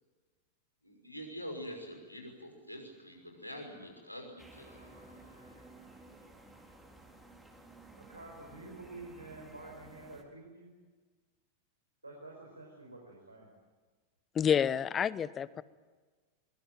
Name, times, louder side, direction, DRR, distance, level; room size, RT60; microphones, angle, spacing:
voice 1, 0.8-6.0, equal, 90° left, 3 dB, 5.8 m, -46 dB
sound 1, 4.4-10.2, right 2 dB, 5° right, 4.1 m, -55 dB
voice 2, 8.0-10.7 12.0-13.6, right 2 dB, 80° right, -1 dB, 5.0 m, -49 dB
voice 3, 14.3-15.6, left 8 dB, 25° left, 19 dB, 0.9 m, -29 dB
23.5 x 23.0 x 9.1 m, 1.4 s
figure-of-eight pair, 90°, 0 cm